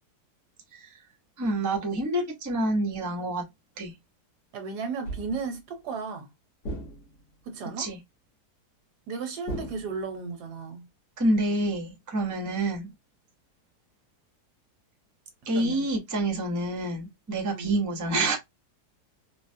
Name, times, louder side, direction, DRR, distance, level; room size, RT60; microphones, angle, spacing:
voice 1, 1.4-3.5 3.8-3.9 7.8-8.0 11.2-12.9 15.4-18.4, right 1 dB, 20° right, 0.5 m, -27 dB
voice 2, 4.5-6.3 7.5-7.9 9.1-10.9 12.4-12.6 15.5-15.9 17.5-17.8, right 4 dB, 75° right, 1.3 m, -35 dB
sound 1, 5.1-5.6 6.6-7.4 9.5-10.4, right 1 dB, 70° left, 1.7 m, -38 dB
3.8 x 2.0 x 2.6 m
omnidirectional pair, 1.8 m